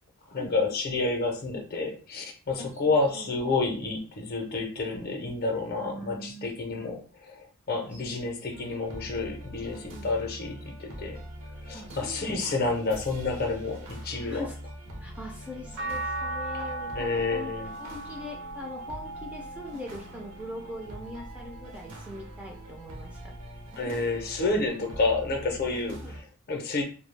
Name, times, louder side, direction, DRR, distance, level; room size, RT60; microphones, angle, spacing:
voice 1, 0.3-11.2 11.6-14.5 16.9-17.7 23.8-26.8, left 3 dB, 45° left, 3 dB, 0.5 m, -29 dB
voice 2, 5.8-6.9 7.9-8.2 9.6-10.1 11.7-12.5 14.2-14.6 15.0-17.5 17.8-23.1 23.8-24.0 26.0-26.2, left 1 dB, 5° right, 0 dB, 0.3 m, -41 dB
sound 1, 8.5-26.2, equal, 60° right, 0.6 m, -43 dB
sound 2, 15.8-22.1 22.6-24.0 25.4-25.5, right 2 dB, 80° right, 0.9 m, -39 dB
2.3 x 2.0 x 3.1 m, 0.41 s
head